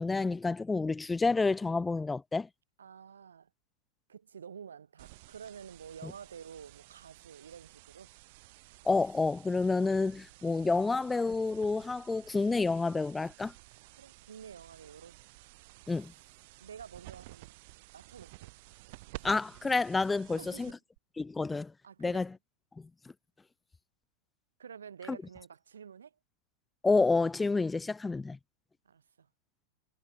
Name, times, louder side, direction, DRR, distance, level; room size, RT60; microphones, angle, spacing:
voice 1, 0.0-2.5 6.0-6.1 8.8-13.5 15.9-16.1 19.2-20.7 21.2-21.7 22.0-22.3 22.8-22.9 25.1-25.2 26.8-28.4, left 3 dB, 10° left, 0.3 m, -29 dB
voice 2, 2.8-3.5 4.1-8.1 13.9-15.2 16.6-17.6 17.9-18.5 20.4-20.7 21.8-22.3 24.6-26.2 28.9-29.3, right 7 dB, 70° right, 3.5 m, -49 dB
sound 1, 5.0-21.0, right 23 dB, 50° right, 0.9 m, -53 dB
figure-of-eight pair, 90°, 0 cm